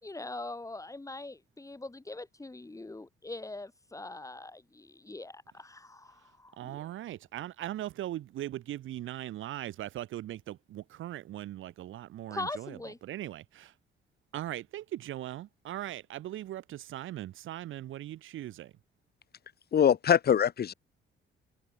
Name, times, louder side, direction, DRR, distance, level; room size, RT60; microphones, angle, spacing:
voice 1, 0.0-6.9 12.3-13.0, left 2 dB, 15° left, 4.2 m, -42 dB
voice 2, 6.6-13.7 14.3-18.7, right 13 dB, 80° right, 7.3 m, -39 dB
voice 3, 19.7-20.7, left 8 dB, 55° left, 1.6 m, -23 dB
cardioid pair, 90°, 20 cm